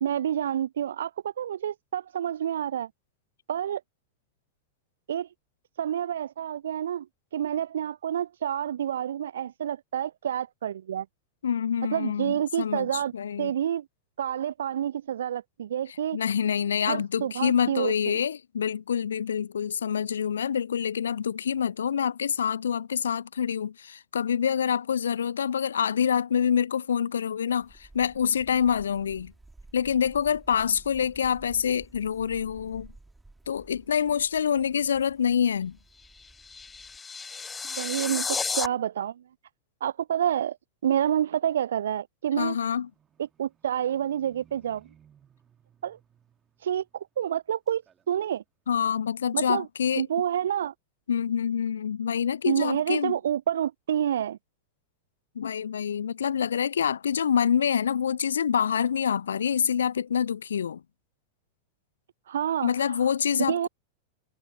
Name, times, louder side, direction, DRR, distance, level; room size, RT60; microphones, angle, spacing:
voice 1, 0.0-2.9 3.5-3.8 5.1-5.3 5.8-7.1 7.3-11.1 11.9-13.1 13.4-13.9 14.2-16.2 16.9-18.2 37.6-39.2 39.8-40.6 40.8-42.6 43.2-44.9 45.8-46.0 46.6-47.8 48.1-48.4 49.3-49.7 50.0-50.7 52.5-54.4 62.3-63.0 63.5-63.7, right 10 dB, 65° right, 0.3 m, -28 dB
voice 2, 11.4-13.5 16.1-29.3 29.7-32.9 33.5-35.8 42.4-42.9 48.7-50.0 51.1-53.2 55.4-60.8 62.6-63.7, left 8 dB, 70° left, 0.6 m, -26 dB
sound 1, 27.6-37.0, right 2 dB, 5° right, 2.6 m, -53 dB
sound 2, 36.0-38.7, left 5 dB, 15° left, 0.5 m, -32 dB
Livestock farm animals working animals, 42.6-47.4 47.7-48.4 48.8-48.9, right 8 dB, 25° right, 2.3 m, -62 dB
figure-of-eight pair, 90°, 0 cm